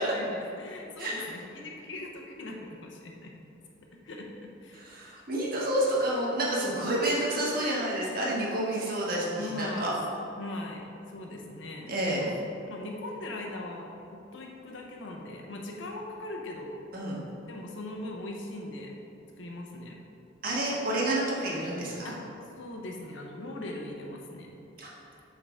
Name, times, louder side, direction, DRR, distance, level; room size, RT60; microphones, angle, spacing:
voice 1, 0.0-3.3 4.0-4.8 9.3-9.9 10.3-12.4 12.7-13.9 14.3-16.7 17.5-18.9 19.4-19.9 22.0-22.2 22.6-24.5, left 1 dB, 75° left, 1 dB, 0.9 m, -40 dB
voice 2, 4.7-9.9 11.9-12.2 16.9-17.2 20.4-22.2 24.8-24.9, right 1 dB, 50° right, -5 dB, 1.5 m, -29 dB
7.7 x 3.9 x 4.9 m, 2.8 s
head